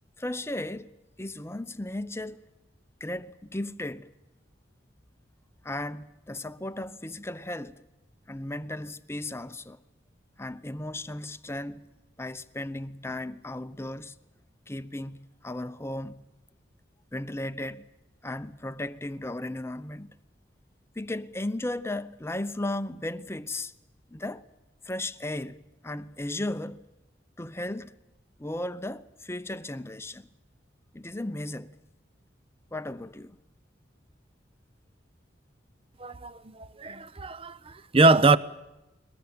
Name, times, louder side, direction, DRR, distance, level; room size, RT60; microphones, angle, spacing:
voice 1, 0.2-2.4 3.0-4.1 5.6-7.8 8.3-9.8 10.4-11.9 12.2-14.1 14.7-16.2 17.1-17.9 18.2-20.1 20.9-23.7 24.1-24.4 24.8-25.6 25.8-26.8 27.4-27.9 28.4-30.3 30.9-31.7 32.7-33.4, left 1 dB, 15° left, 0.8 m, -35 dB
voice 2, 36.0-38.4, right 3 dB, 30° right, 0.8 m, -23 dB
22.5 x 20.0 x 8.9 m
head